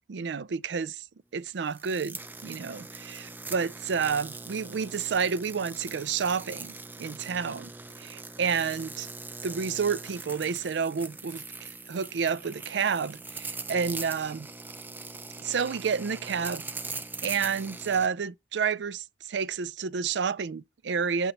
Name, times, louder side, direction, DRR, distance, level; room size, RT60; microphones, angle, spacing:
voice 1, 0.1-1.0 1.3-7.7 8.0-9.1 9.4-11.4 11.9-14.5 15.4-21.3, right 6 dB, 80° right, 0.5 m, -30 dB
sound 1, 1.6-18.1, right 3 dB, 10° right, 0.4 m, -41 dB
11.0 x 4.4 x 5.3 m
head